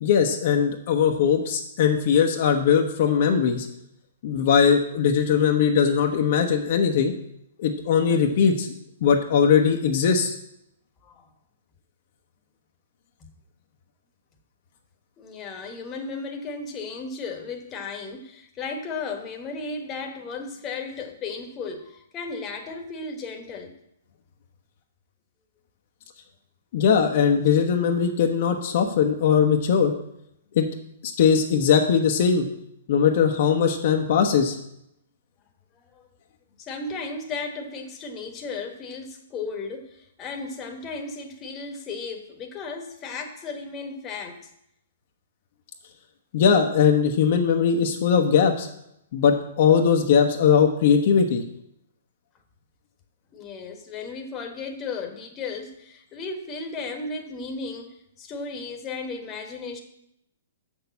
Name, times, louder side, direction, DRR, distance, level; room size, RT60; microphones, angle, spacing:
voice 1, 0.0-3.7 4.2-7.1 7.6-8.7 9.0-10.4 26.7-29.9 30.5-30.7 31.0-32.5 32.9-34.6 46.3-48.7 49.1-51.4, left 7 dB, 55° left, 2 dB, 1.0 m, -20 dB
voice 2, 15.2-23.7 35.8-36.1 36.6-44.5 53.3-59.8, left 4 dB, 25° left, 4 dB, 1.3 m, -35 dB
6.6 x 6.3 x 7.0 m, 0.77 s
hypercardioid pair, 125°, 0 cm